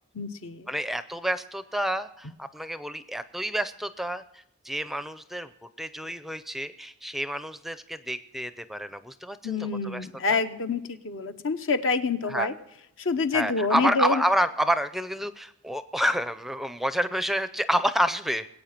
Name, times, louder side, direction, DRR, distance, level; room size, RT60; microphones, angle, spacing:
voice 1, 0.1-0.7 9.4-12.5 13.0-14.2, left 4 dB, 65° left, 9 dB, 0.9 m, -27 dB
voice 2, 0.7-4.2 4.6-9.6 9.8-10.4 12.2-12.5 13.3-18.5, equal, ahead, 12 dB, 0.5 m, -29 dB
21.0 x 8.7 x 5.9 m, 0.85 s
head